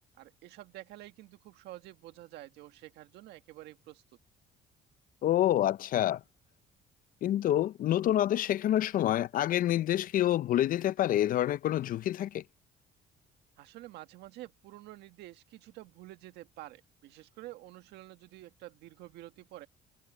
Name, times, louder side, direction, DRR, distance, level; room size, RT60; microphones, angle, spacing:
voice 1, 0.2-4.0 13.6-19.7, right 16 dB, 85° right, 1.7 m, -49 dB
voice 2, 5.2-6.2 7.2-12.4, left 12 dB, 55° left, 0.5 m, -27 dB
cardioid pair, 110°, 17 cm